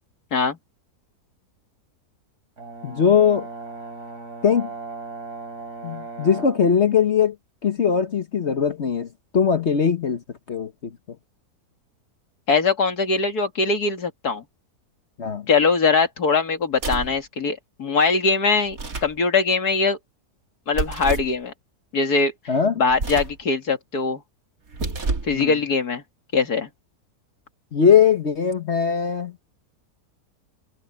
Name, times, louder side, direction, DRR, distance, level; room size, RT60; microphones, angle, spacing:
Brass instrument, 2.6-6.7, right 4 dB, 85° right, 6.7 m, -37 dB
voice 1, 2.8-3.5 4.4-4.7 5.8-7.3 7.6-9.1 9.3-10.2 10.5-10.9 15.2-15.5 22.5-22.8 25.3-25.5 27.7-29.3, left 7 dB, 50° left, 1.3 m, -20 dB
voice 2, 12.5-14.4 15.5-20.0 20.7-21.5 21.9-22.3 22.8-24.2 25.2-26.0 26.3-26.7, left 4 dB, 75° left, 2.7 m, -21 dB
sound 1, 16.7-17.2 18.7-19.2 20.7-21.4 22.9-23.4 24.7-25.4, right 3 dB, 60° right, 2.8 m, -29 dB
omnidirectional pair, 1.6 m